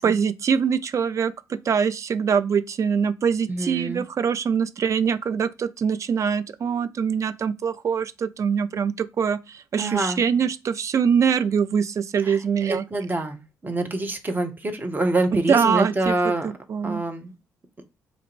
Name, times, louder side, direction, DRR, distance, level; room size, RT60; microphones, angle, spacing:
voice 1, 0.0-12.8 15.3-16.2 16.4-17.0, right 7 dB, 40° right, 0.4 m, -23 dB
voice 2, 3.5-4.0 9.8-10.2 12.2-12.4 12.7-16.5 16.8-17.3, right 2 dB, 25° right, 0.8 m, -26 dB
4.1 x 2.5 x 4.3 m
hypercardioid pair, 45°, 8 cm